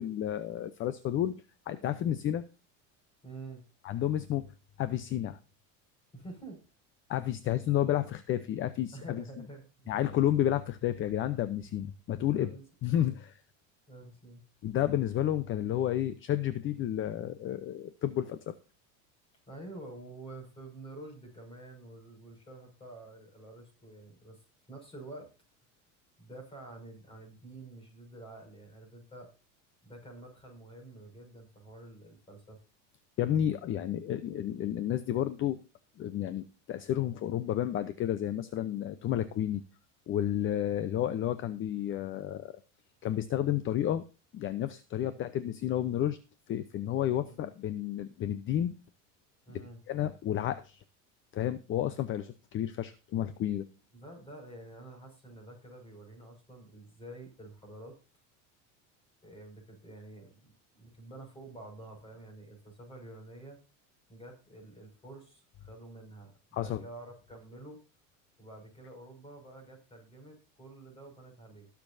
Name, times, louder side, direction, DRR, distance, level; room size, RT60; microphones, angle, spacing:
voice 1, 0.0-1.3 1.7-2.4 3.8-4.5 4.8-5.4 7.1-9.2 9.9-12.6 12.8-13.4 14.6-18.5 33.2-35.6 36.0-39.6 40.1-42.5 43.0-44.0 44.3-46.2 46.5-48.7 49.9-50.8 51.3-53.7 66.5-66.8, left 11 dB, 35° left, 13 dB, 0.7 m, -31 dB
voice 2, 1.9-2.2 3.2-3.7 6.1-6.6 7.9-8.0 8.9-10.2 12.3-12.6 13.9-14.4 19.5-25.3 26.2-29.3 29.8-32.6 40.7-41.0 45.0-45.2 47.4-47.5 49.5-49.8 53.9-58.0 59.2-63.6 64.1-67.8 68.4-71.7, right 2 dB, 15° left, 3 dB, 5.9 m, -49 dB
20.0 x 7.0 x 2.7 m, 0.32 s
supercardioid pair, 145°, 37 cm